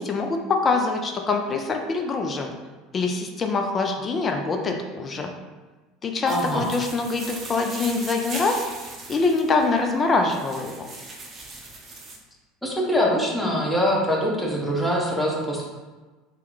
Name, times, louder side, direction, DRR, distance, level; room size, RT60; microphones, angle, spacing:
voice 1, 0.0-2.5 2.9-5.3 6.0-8.6 9.1-10.9, left 3 dB, 30° left, 4 dB, 0.4 m, -24 dB
voice 2, 6.2-6.7 12.6-15.6, equal, 5° left, -3 dB, 0.8 m, -23 dB
sound 1, 6.3-12.2, right 3 dB, 30° right, 0.6 m, -39 dB
2.8 x 2.2 x 3.8 m, 1.3 s
figure-of-eight pair, 70°, 0 cm